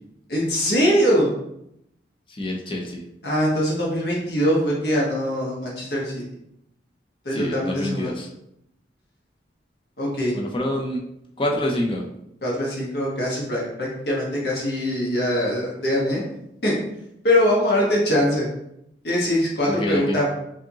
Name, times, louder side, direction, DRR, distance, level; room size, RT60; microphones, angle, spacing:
voice 1, 0.3-1.3 3.2-6.2 7.2-8.1 10.0-10.3 12.4-16.2 16.6-16.7 17.2-18.5 19.0-20.3, equal, 60° left, -4 dB, 1.3 m, -22 dB
voice 2, 2.3-3.0 7.3-8.3 10.3-11.0 11.4-12.0 19.7-20.2, left 1 dB, 30° left, 0 dB, 0.6 m, -26 dB
5.0 x 2.7 x 2.8 m, 0.79 s
head